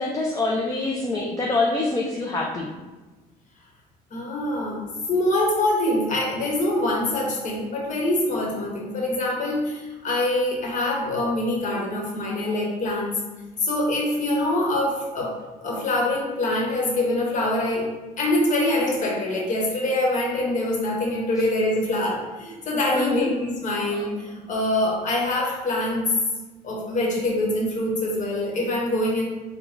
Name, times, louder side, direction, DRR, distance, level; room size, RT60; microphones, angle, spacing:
voice 1, 0.0-2.7 22.9-23.3, left 2 dB, 20° left, -1 dB, 0.5 m, -25 dB
voice 2, 4.1-13.2 13.6-15.3 15.6-17.9 18.2-26.1 26.6-29.2, left 1 dB, 50° left, -2 dB, 1.1 m, -24 dB
4.0 x 2.2 x 3.8 m, 1.2 s
cardioid pair, 110°, 17 cm